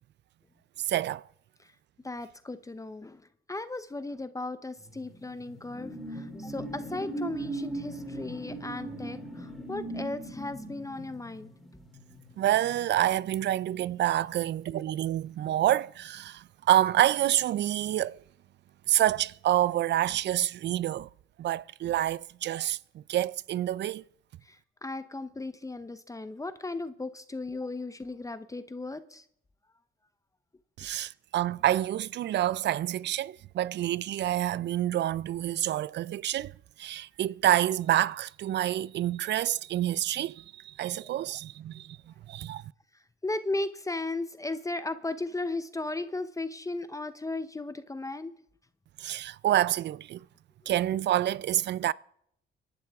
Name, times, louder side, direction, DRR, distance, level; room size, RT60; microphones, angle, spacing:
voice 1, 0.9-1.2 12.4-18.2 18.9-21.1 21.4-24.0 30.8-36.5 36.8-42.0 42.3-42.6 49.0-50.2 50.7-51.9, right 13 dB, 60° right, 0.5 m, -27 dB
voice 2, 2.0-11.5 24.4-29.2 41.0-41.1 42.9-48.3 50.6-50.7, left 2 dB, 15° left, 0.7 m, -36 dB
sound 1, 4.9-13.9 14.2-14.5, right 1 dB, ahead, 3.9 m, -39 dB
24.0 x 12.0 x 3.6 m
cardioid pair, 90°, 20 cm